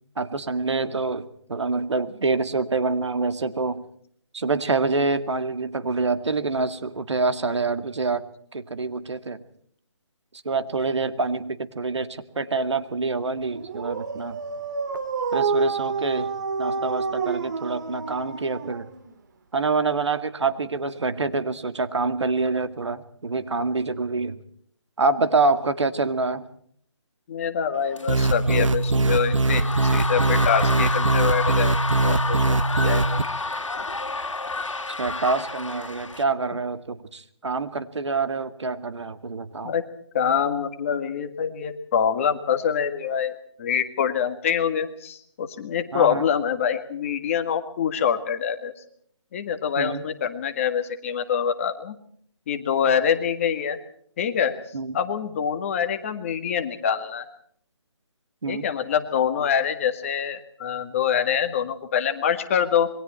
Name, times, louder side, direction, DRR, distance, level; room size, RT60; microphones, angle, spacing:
voice 1, 0.2-3.8 4.3-8.2 8.5-9.4 10.4-14.4 15.3-18.9 19.5-24.4 25.0-26.4 35.0-39.7 45.9-46.3 49.8-50.0 54.7-55.0 58.4-58.7, right 3 dB, 65° right, 10 dB, 2.2 m, -26 dB
Dog, 13.5-19.2, right 5 dB, 40° right, 2.1 m, -28 dB
voice 2, 27.3-31.7 32.0-33.2 39.6-39.8 40.1-43.3 43.6-48.7 49.3-52.0 52.5-53.8 54.2-54.6 54.9-57.3 58.5-62.9, left 8 dB, 25° left, 8 dB, 1.8 m, -25 dB
sound 1, 27.9-36.2, left 3 dB, 85° left, 2.3 m, -30 dB
sound 2, 28.1-33.2, right 2 dB, 85° right, 1.0 m, -21 dB
27.0 x 22.5 x 4.3 m, 0.63 s
figure-of-eight pair, 160°, 16 cm